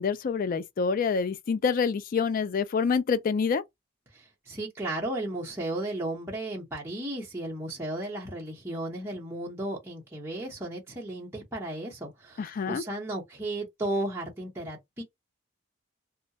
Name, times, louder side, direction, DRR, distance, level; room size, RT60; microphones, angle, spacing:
voice 1, 0.0-3.6 12.4-12.8, left 5 dB, 45° left, 0.3 m, -27 dB
voice 2, 4.1-15.0, right 1 dB, 10° right, 0.8 m, -34 dB
2.3 x 2.1 x 2.6 m
head